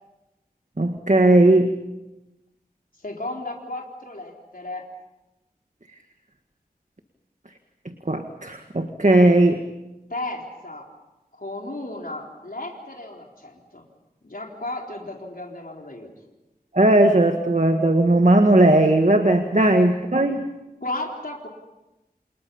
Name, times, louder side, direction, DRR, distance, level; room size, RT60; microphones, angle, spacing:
voice 1, 0.8-1.7 8.1-9.6 16.7-20.5, right 1 dB, 50° right, 5 dB, 1.8 m, -17 dB
voice 2, 3.0-4.9 10.1-10.9 11.3-13.8 14.2-16.1 19.5-19.7 20.8-21.5, left 2 dB, 65° left, 0 dB, 4.1 m, -34 dB
29.0 x 28.5 x 5.6 m, 1.0 s
wide cardioid pair, 45°, 16 cm